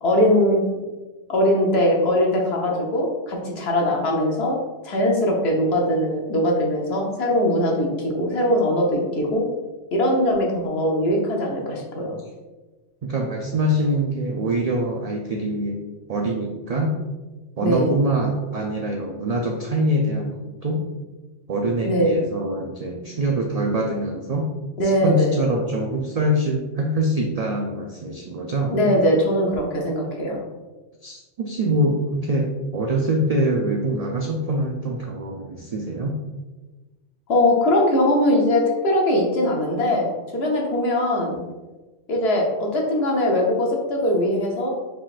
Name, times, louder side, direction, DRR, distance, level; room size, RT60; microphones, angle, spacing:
voice 1, 0.0-0.6 1.3-4.6 4.8-9.5 9.9-12.2 17.6-18.0 21.8-22.2 24.8-25.4 28.7-30.4 37.3-41.4 42.1-44.7, left 1 dB, 60° left, -1 dB, 1.1 m, -21 dB
voice 2, 13.0-15.8 16.1-16.9 17.6-20.4 20.6-20.8 21.5-24.5 24.8-28.8 31.0-36.1, right 1 dB, 85° right, 1 dB, 0.3 m, -24 dB
4.9 x 3.7 x 2.5 m, 1.2 s
omnidirectional pair, 1.2 m